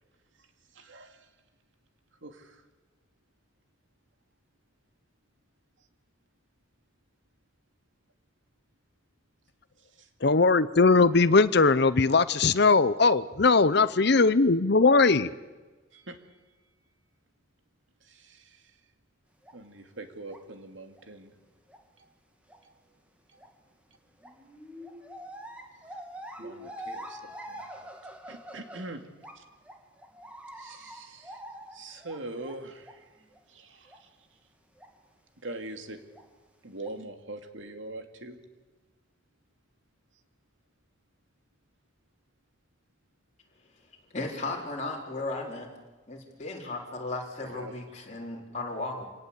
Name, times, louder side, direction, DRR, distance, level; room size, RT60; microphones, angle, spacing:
voice 1, 0.7-1.3 2.2-2.6 9.8-10.1 13.7-13.8 15.9-16.4 18.0-18.8 19.5-21.3 22.0-22.1 22.6-22.7 23.3-23.4 25.8-26.0 26.4-27.9 28.3-29.0 29.4-29.5 30.5-31.4 31.7-34.4 35.4-36.0 36.6-38.4 47.4-48.0, right 2 dB, 70° right, 2.5 m, -44 dB
voice 2, 10.2-15.3, left 4 dB, 55° left, 0.7 m, -20 dB
sound 1, 19.4-19.5 20.3-20.4 20.9-21.0 21.7-21.8 22.5-22.6 23.4-23.5 24.2-29.4 29.6-33.0 33.3-33.4 33.9-34.0 34.8-34.9 36.1-36.2 36.8-36.9, equal, 5° right, 2.2 m, -44 dB
voice 3, 44.1-45.7 46.1-49.0, left 2 dB, 35° left, 3.9 m, -35 dB
26.5 x 18.0 x 8.3 m
head